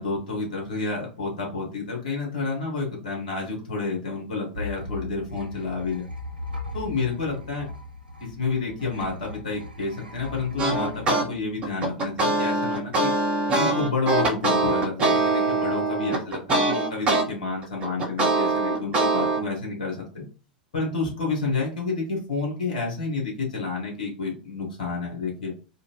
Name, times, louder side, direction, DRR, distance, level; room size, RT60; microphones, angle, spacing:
voice 1, 0.0-6.1 6.7-7.7 8.2-13.1 13.5-20.2 20.7-25.5, left 4 dB, 60° left, -2 dB, 1.7 m, -29 dB
sound 1, 4.5-12.1, left 2 dB, 85° right, 0.7 m, -38 dB
sound 2, 10.6-11.2 11.6-17.2 17.6-19.4, right 2 dB, 25° right, 1.2 m, -23 dB
3.6 x 2.6 x 3.1 m, 0.36 s
figure-of-eight pair, 90°, 5 cm